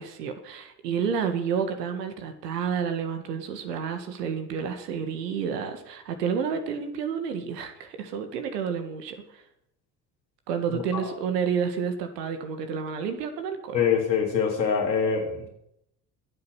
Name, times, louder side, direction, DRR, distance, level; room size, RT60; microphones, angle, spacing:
voice 1, 0.0-9.4 10.5-13.8, right 7 dB, 70° right, 7 dB, 2.0 m, -30 dB
voice 2, 13.7-15.5, left 6 dB, 85° left, 1 dB, 3.3 m, -24 dB
22.0 x 8.4 x 6.3 m, 0.80 s
figure-of-eight pair, 60°, 50 cm